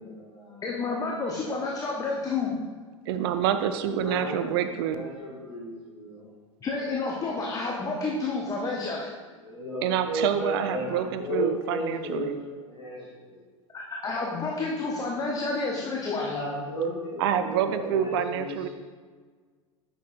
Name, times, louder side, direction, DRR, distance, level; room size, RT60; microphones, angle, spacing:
voice 1, 0.0-0.6 3.7-4.6 4.9-6.3 9.4-13.4 16.0-18.6, equal, 75° left, -8 dB, 1.9 m, -34 dB
voice 2, 0.6-2.6 6.6-9.1 13.7-16.3, left 3 dB, 20° left, -2 dB, 0.9 m, -30 dB
voice 3, 3.1-5.1 9.8-12.4 17.2-18.7, right 9 dB, 50° right, 10 dB, 0.4 m, -27 dB
9.0 x 6.2 x 2.6 m, 1.5 s
figure-of-eight pair, 80°, 17 cm